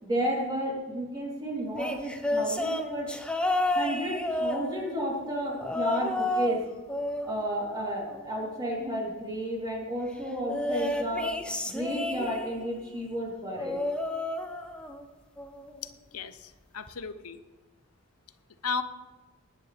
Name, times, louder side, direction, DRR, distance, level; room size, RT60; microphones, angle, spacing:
voice 1, 0.0-3.1 3.7-6.6 7.2-11.3 11.7-13.8, equal, 20° right, -4 dB, 3.4 m, -32 dB
sound 1, 1.8-5.1 5.6-6.6 6.9-8.4 10.5-12.7 13.6-15.0 15.4-15.7 16.9-17.0, left 1 dB, 5° left, 0.9 m, -31 dB
voice 2, 15.8-17.4 18.6-18.8, left 5 dB, 85° left, 11 dB, 0.8 m, -35 dB
19.5 x 9.6 x 3.5 m, 1.2 s
head